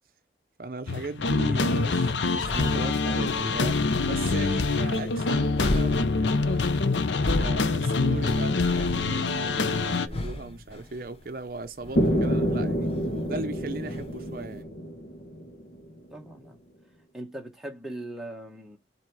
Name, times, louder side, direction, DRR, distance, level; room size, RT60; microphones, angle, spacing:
voice 1, 0.6-3.8 4.1-6.6 7.3-12.9 13.3-14.7, right 3 dB, 55° right, 0.6 m, -38 dB
sound 1, 0.9-10.1, left 3 dB, 90° left, 0.7 m, -25 dB
sound 2, 1.6-14.6, left 1 dB, 35° left, 0.9 m, -37 dB
sound 3, 12.0-15.8, equal, 60° left, 1.3 m, -27 dB
voice 2, 16.1-16.6 17.1-18.8, right 1 dB, ahead, 1.4 m, -39 dB
7.4 x 3.0 x 4.7 m
head